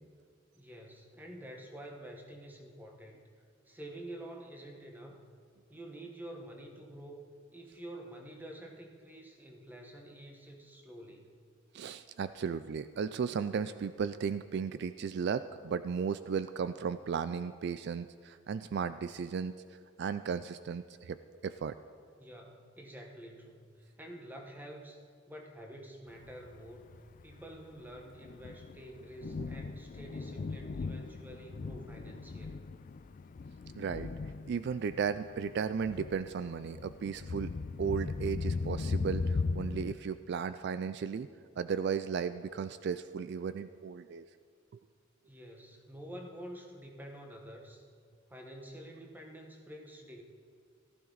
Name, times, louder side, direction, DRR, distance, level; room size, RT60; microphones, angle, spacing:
voice 1, 0.5-3.2 3.6-5.2 5.7-11.4 22.2-32.6 45.3-47.8 48.3-50.2, right 1 dB, 10° right, 1 dB, 1.3 m, -48 dB
voice 2, 11.7-19.5 20.0-21.2 21.4-21.7 33.8-34.1 34.5-37.5 37.8-41.3 41.6-44.3, right 6 dB, 55° right, 12 dB, 0.3 m, -35 dB
Thunder, 26.3-39.9, left 4 dB, 40° left, 0.3 m, -38 dB
15.0 x 14.0 x 4.0 m, 2.1 s
head